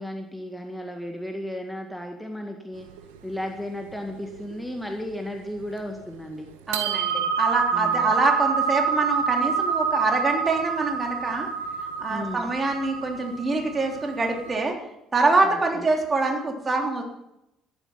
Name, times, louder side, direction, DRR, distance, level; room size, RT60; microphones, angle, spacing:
voice 1, 0.0-2.9 3.2-6.5 7.7-8.2 12.1-12.5 15.4-15.9, left 1 dB, 5° left, 3 dB, 2.0 m, -34 dB
sound 1, 2.8-4.8 5.1-5.2 5.6-6.1 6.5-14.6, right 6 dB, 75° right, 1.0 m, -27 dB
voice 2, 6.7-11.5 11.8-14.8 15.1-17.0, right 3 dB, 30° right, 1 dB, 3.5 m, -25 dB
13.5 x 11.5 x 5.9 m, 0.85 s
figure-of-eight pair, 50°, 0 cm